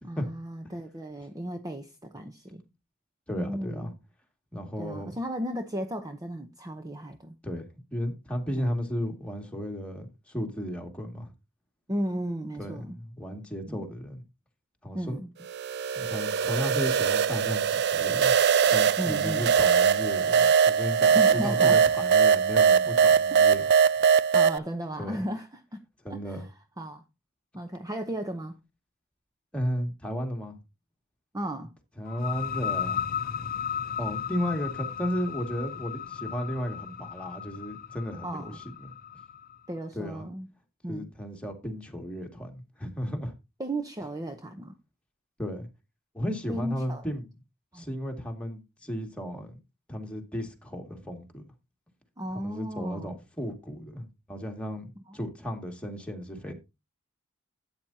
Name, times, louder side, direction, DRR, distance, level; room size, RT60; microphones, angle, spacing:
voice 1, 0.0-2.6 3.4-3.9 4.8-7.4 8.6-8.7 11.9-13.0 13.7-13.9 14.9-15.3 19.0-19.5 21.1-21.9 23.3-23.7 24.3-25.8 26.1-26.5 26.8-27.0 27.5-28.6 31.3-31.7 38.2-38.6 39.7-40.5 40.8-41.1 43.6-44.7 46.5-47.0 47.7-47.9 52.2-53.2 55.1-55.2, right 1 dB, 15° right, 0.8 m, -35 dB
voice 2, 3.3-3.9 4.5-5.2 7.4-7.6 7.9-11.3 12.6-14.2 14.8-15.2 16.0-18.3 18.7-23.6 25.0-25.2 26.0-26.4 29.5-30.6 32.0-33.1 34.0-38.9 39.9-40.3 40.9-43.3 45.4-45.7 46.1-47.3 47.7-49.6 49.9-51.5 52.3-56.5, equal, 5° left, 2.2 m, -34 dB
sound 1, 15.5-24.6, right 6 dB, 50° right, 0.4 m, -22 dB
sound 2, 32.0-39.5, left 8 dB, 45° left, 0.7 m, -35 dB
12.5 x 9.0 x 2.8 m
head